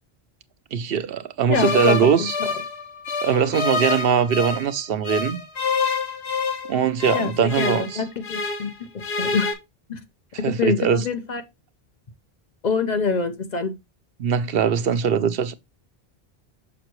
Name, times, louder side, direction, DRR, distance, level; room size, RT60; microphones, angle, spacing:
voice 1, 0.7-2.3 3.2-5.4 6.7-8.0 10.4-11.0 14.2-15.5, right 7 dB, 65° right, 0.8 m, -21 dB
sound 1, 1.5-4.7 5.0-8.7 9.0-9.5, left 4 dB, 80° left, 1.2 m, -27 dB
voice 2, 1.5-2.3 7.1-8.7 9.2-9.5 9.9-10.0 10.6-11.4 12.6-13.7, left 5 dB, 45° left, 1.0 m, -25 dB
6.3 x 5.8 x 3.0 m
omnidirectional pair, 1.1 m